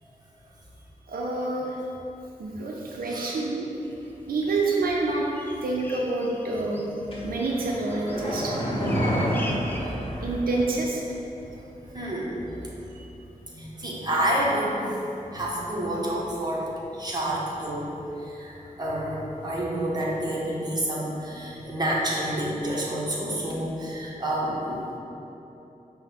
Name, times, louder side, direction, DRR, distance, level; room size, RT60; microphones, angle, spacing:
voice 1, 1.1-1.8 2.4-3.7 4.3-5.3 5.6-6.9 7.2-8.5 10.2-11.0 12.9-13.0, right 2 dB, 85° right, -2 dB, 0.5 m, -27 dB
voice 2, 3.1-3.4 9.0-10.3 11.9-12.6 13.5-15.0 15.3-18.0 18.2-25.0, right 1 dB, 25° right, -5 dB, 0.8 m, -29 dB
sound 1, 3.8-3.9 4.6-4.8 5.1-9.8, left 1 dB, 15° left, 0.4 m, -40 dB
sound 2, 7.1-10.8 11.1-11.2, equal, 40° left, 0.8 m, -29 dB
5.3 x 2.1 x 3.9 m, 3.0 s
wide cardioid pair, 95°, 15 cm